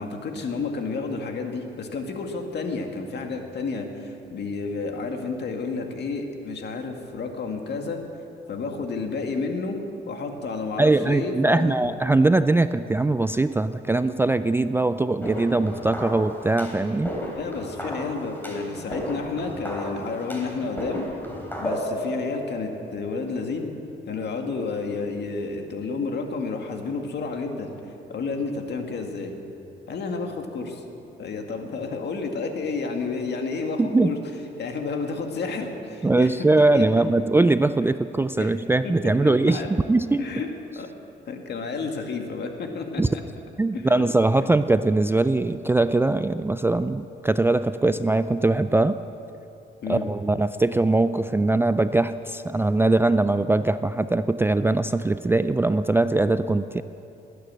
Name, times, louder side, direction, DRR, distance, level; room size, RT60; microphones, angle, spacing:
voice 1, 0.0-8.0 8.5-9.8 10.1-11.8 14.7-14.9 17.4-21.1 21.6-23.7 24.1-27.7 28.1-29.3 29.9-30.8 31.2-34.2 34.6-36.3 36.7-37.0 38.4-38.5 38.8-39.7 40.2-40.9 41.3-43.2 43.7-44.0 44.4-44.6 49.8-50.1, left 4 dB, 60° left, 3 dB, 2.0 m, -31 dB
voice 2, 10.8-17.1 33.8-34.1 36.0-40.2 43.0-43.1 43.6-49.0 49.9-56.8, right 2 dB, 10° right, 12 dB, 0.3 m, -21 dB
sound 1, 15.2-23.3, equal, 10° left, 3.6 m, -34 dB
19.5 x 9.3 x 7.7 m, 2.7 s
cardioid pair, 90°, 20 cm